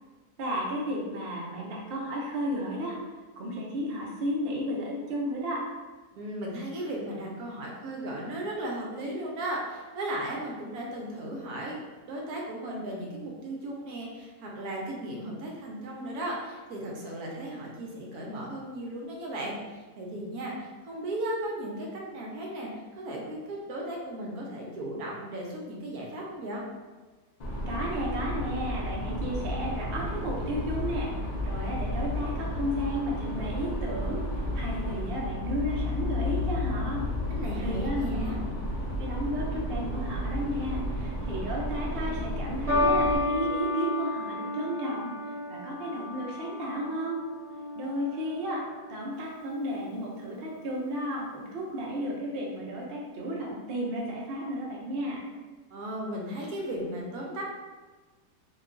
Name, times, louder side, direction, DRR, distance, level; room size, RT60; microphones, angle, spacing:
voice 1, 0.4-3.0 3.4-5.6 27.7-34.2 34.5-37.0 37.6-38.2 39.0-45.1 45.5-47.2 47.7-55.2, equal, 55° right, -3 dB, 0.6 m, -33 dB
voice 2, 6.1-11.8 12.1-22.7 23.0-26.6 37.3-38.5 55.7-57.4, right 1 dB, 75° right, -2 dB, 1.0 m, -36 dB
sound 1, 27.4-43.2, left 1 dB, 90° left, 0.3 m, -32 dB
sound 2, 42.7-49.2 50.0-50.4, left 2 dB, 15° right, 0.5 m, -32 dB
3.0 x 2.2 x 3.7 m, 1.3 s
omnidirectional pair, 1.7 m